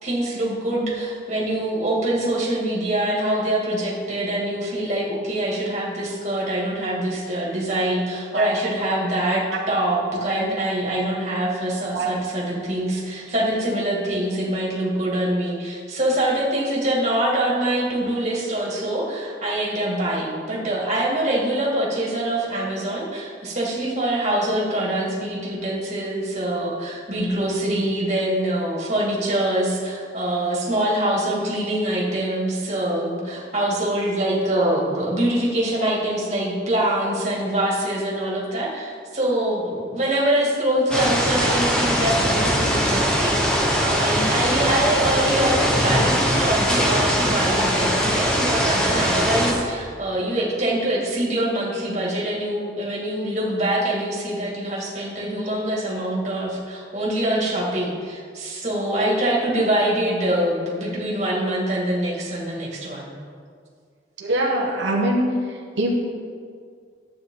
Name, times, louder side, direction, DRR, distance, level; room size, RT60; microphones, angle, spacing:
voice 1, 0.0-63.1, right 1 dB, 35° right, -4 dB, 2.1 m, -24 dB
sound 1, 40.9-49.5, equal, 5° left, 1.1 m, -21 dB
voice 2, 64.2-65.3 65.8-65.9, right 1 dB, 85° right, -2 dB, 1.1 m, -22 dB
12.0 x 8.5 x 3.8 m, 2.1 s
head